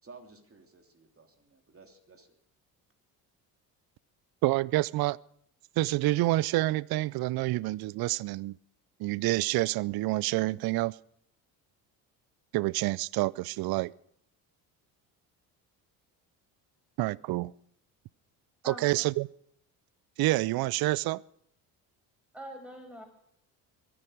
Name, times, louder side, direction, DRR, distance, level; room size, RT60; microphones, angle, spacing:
voice 1, 0.0-2.4, right 4 dB, 25° right, 3.1 m, -54 dB
voice 2, 4.4-5.2 5.8-8.6 9.0-11.0 12.5-13.9 17.0-17.5 18.7-19.3 20.2-21.2, right 18 dB, 50° right, 0.5 m, -28 dB
voice 3, 18.6-19.1 22.3-23.1, equal, 5° right, 5.9 m, -44 dB
22.5 x 11.0 x 5.0 m
hypercardioid pair, 60°, 48 cm